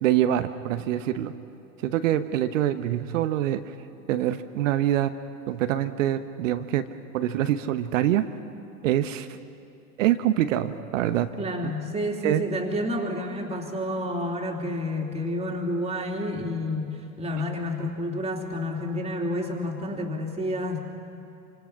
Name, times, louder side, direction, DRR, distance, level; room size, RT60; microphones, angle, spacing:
voice 1, 0.0-1.3 1.8-3.7 4.1-5.1 5.5-6.9 7.1-8.2 8.8-9.3 10.0-11.3 12.2-12.4, right 12 dB, 55° right, 10 dB, 1.1 m, -25 dB
voice 2, 11.4-20.8, left 1 dB, 15° right, 1 dB, 3.2 m, -29 dB
27.5 x 25.5 x 5.8 m, 2.8 s
figure-of-eight pair, 90°, 45 cm